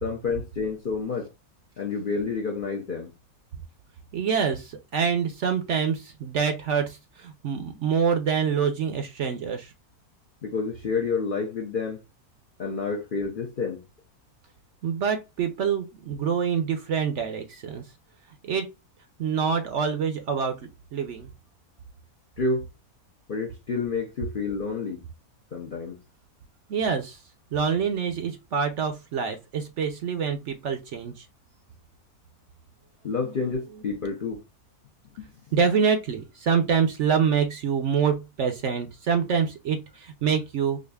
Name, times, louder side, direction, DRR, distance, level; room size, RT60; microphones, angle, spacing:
voice 1, 0.0-1.3 1.8-3.1 10.4-12.0 12.6-13.8 22.4-22.7 23.3-25.0 25.5-26.0 33.0-34.4 35.2-35.3, left 4 dB, 50° left, 0.6 m, -29 dB
voice 2, 4.1-9.7 14.8-17.8 18.4-18.7 19.2-20.6 20.9-21.3 26.7-27.2 27.5-31.2 35.5-40.8, right 6 dB, 60° right, 0.8 m, -26 dB
4.8 x 2.5 x 2.3 m
omnidirectional pair, 1.6 m